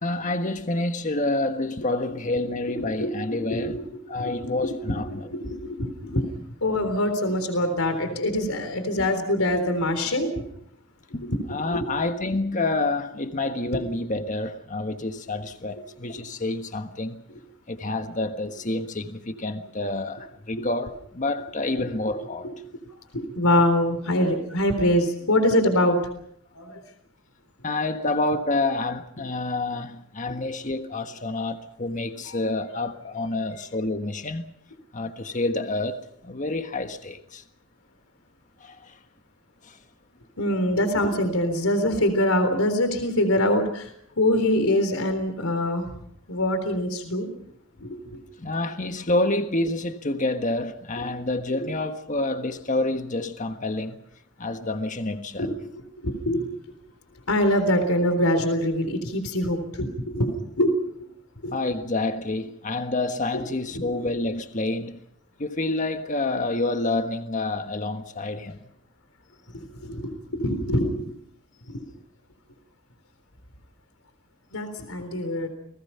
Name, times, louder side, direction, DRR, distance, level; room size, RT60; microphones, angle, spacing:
voice 1, 0.0-3.8 4.1-5.3 9.0-9.1 11.1-17.2 17.7-22.5 27.6-34.5 34.9-37.4 38.6-39.0 39.6-39.8 48.4-54.0 54.4-55.6 61.5-65.0 65.4-68.7, left 2 dB, 35° left, 1.5 m, -28 dB
voice 2, 2.7-3.9 4.2-4.3 4.6-6.2 6.6-10.5 11.3-11.4 11.7-11.8 13.7-13.8 20.6-20.7 22.4-22.5 23.1-26.1 26.5-26.8 32.3-32.4 40.4-43.9 44.2-45.9 46.3-47.3 47.8-48.2 55.4-56.5 57.3-60.7 61.4-61.6 63.3-63.4 63.7-64.1 69.5-71.2 71.7-71.8 74.5-75.5, left 1 dB, 80° left, 3.8 m, -24 dB
29.5 x 20.0 x 5.8 m
head